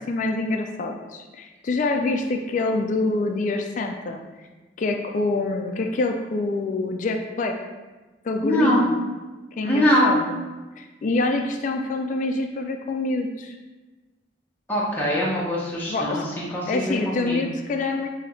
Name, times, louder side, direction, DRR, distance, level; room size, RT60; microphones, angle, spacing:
voice 1, 0.1-4.2 4.8-7.5 8.2-8.9 9.6-10.2 10.8-13.5 15.9-16.2 16.7-18.1, left 3 dB, 45° left, 4 dB, 0.3 m, -26 dB
voice 2, 8.4-8.9 9.6-10.2 14.7-17.4, equal, 10° left, -6 dB, 0.6 m, -22 dB
3.3 x 2.7 x 3.9 m, 1.2 s
head